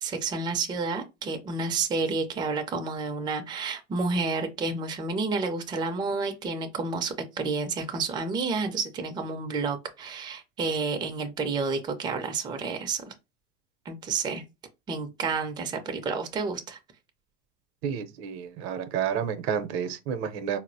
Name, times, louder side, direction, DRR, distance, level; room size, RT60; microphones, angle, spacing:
voice 1, 0.0-13.1 13.9-14.4 14.9-16.8, right 4 dB, 10° right, 0.4 m, -30 dB
voice 2, 17.8-20.6, right 8 dB, 60° right, 0.6 m, -30 dB
4.0 x 2.0 x 2.6 m
hypercardioid pair, 100°, 37 cm